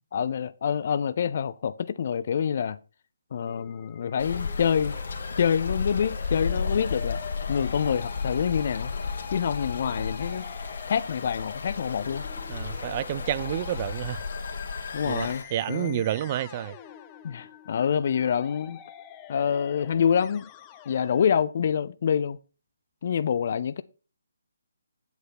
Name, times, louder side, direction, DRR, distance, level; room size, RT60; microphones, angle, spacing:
voice 1, 0.1-2.8 3.3-4.9 5.4-7.2 7.5-8.9 9.3-10.5 10.9-12.2 14.9-16.0 17.2-18.8 19.3-20.5 20.9-22.4 23.0-23.8, left 7 dB, 50° left, 0.5 m, -26 dB
Musical instrument, 3.5-21.4, left 10 dB, 20° left, 0.8 m, -46 dB
sound 1, 4.2-15.4, left 4 dB, 65° left, 2.1 m, -33 dB
voice 2, 12.5-14.2 15.0-16.8, right 12 dB, 35° right, 0.5 m, -30 dB
8.1 x 7.9 x 4.2 m
figure-of-eight pair, 150°, 0 cm